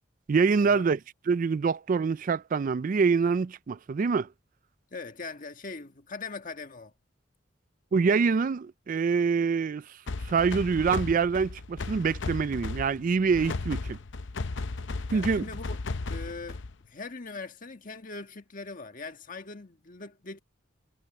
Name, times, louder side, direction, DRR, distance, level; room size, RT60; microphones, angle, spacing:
voice 1, 0.3-1.0 1.3-4.3 7.9-9.8 10.2-14.0 15.1-15.4, right 5 dB, 45° right, 0.4 m, -25 dB
voice 2, 4.9-6.9 15.1-15.8 16.1-16.6 16.9-20.4, left 3 dB, 45° left, 1.6 m, -41 dB
sound 1, 10.1-16.8, left 3 dB, 65° left, 0.7 m, -35 dB
head